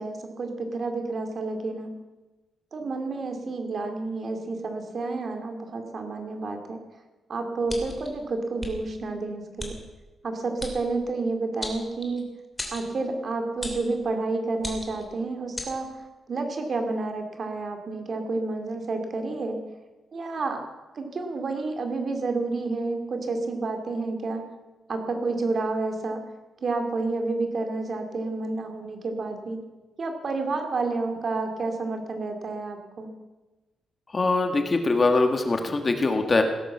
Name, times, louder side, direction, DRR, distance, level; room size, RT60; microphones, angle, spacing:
voice 1, 0.0-2.0 2.7-6.8 7.3-9.8 10.2-12.3 12.7-15.9 16.3-19.6 20.1-20.7 20.9-24.5 24.9-26.2 26.6-29.7 30.0-33.1, right 3 dB, 45° right, 5 dB, 2.5 m, -30 dB
sound 1, 7.7-8.1 8.6-8.7 9.6-9.7 10.6-10.8 11.6-12.2 12.6-12.9 13.6-13.9 14.6-15.0 15.6-15.7, left 1 dB, 10° left, 2.8 m, -35 dB
voice 2, 34.1-36.4, left 3 dB, 25° left, 5 dB, 1.6 m, -22 dB
17.5 x 11.0 x 7.2 m, 1.1 s
wide cardioid pair, 155°, 0 cm